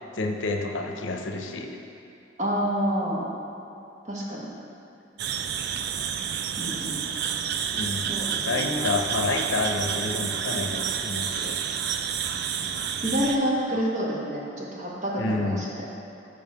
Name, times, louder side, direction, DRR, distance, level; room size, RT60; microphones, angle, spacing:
voice 1, 0.1-1.7 7.7-8.1 8.4-11.6 13.7-13.8 15.2-15.7, left 3 dB, 75° left, 3 dB, 0.6 m, -29 dB
voice 2, 2.4-3.2 4.1-4.5 6.6-7.0 8.1-8.8 13.0-15.8, equal, 40° right, -5 dB, 1.4 m, -28 dB
sound 1, 5.2-13.4, right 8 dB, 60° right, 0.4 m, -29 dB
6.6 x 5.4 x 5.6 m, 2.7 s
head